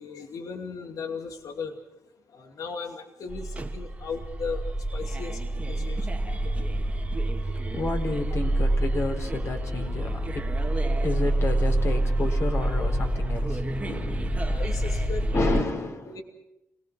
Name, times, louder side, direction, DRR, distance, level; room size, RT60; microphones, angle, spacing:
voice 1, 0.0-1.7 2.3-4.6 4.9-6.7 14.5-15.5 16.1-16.2, left 5 dB, 70° left, 4 dB, 2.6 m, -37 dB
sound 1, 3.3-15.6, right 1 dB, 20° right, 1.9 m, -27 dB
voice 2, 7.7-10.5 11.0-14.6 15.3-16.2, left 3 dB, 50° left, 5 dB, 4.1 m, -31 dB
27.0 x 19.0 x 6.0 m, 0.88 s
cardioid pair, 75°, 6 cm